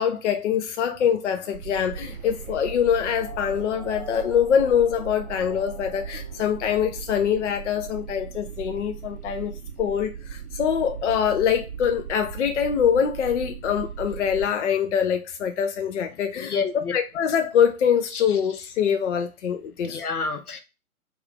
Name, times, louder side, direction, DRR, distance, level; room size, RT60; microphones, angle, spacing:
voice 1, 0.0-16.6 16.9-20.0, left 8 dB, 55° left, 0.5 m, -24 dB
sound 1, 1.5-14.5, right 8 dB, 45° right, 0.6 m, -38 dB
sound 2, 2.0-7.5, right 1 dB, 10° right, 0.8 m, -46 dB
voice 2, 16.4-16.9 19.8-20.6, left 5 dB, 80° left, 0.8 m, -28 dB
3.2 x 2.4 x 3.6 m
figure-of-eight pair, 125°, 44 cm